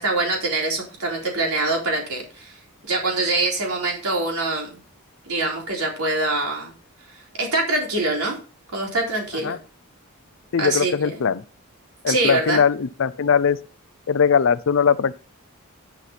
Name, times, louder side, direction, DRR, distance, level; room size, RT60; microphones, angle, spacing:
voice 1, 0.0-2.5 2.9-4.8 5.3-6.7 7.4-8.4 8.7-9.6 10.6-11.2 12.1-12.6, right 2 dB, 80° right, 3.8 m, -24 dB
voice 2, 10.5-11.4 12.0-13.6 14.1-15.2, left 6 dB, 60° left, 0.5 m, -20 dB
11.0 x 5.8 x 4.2 m
head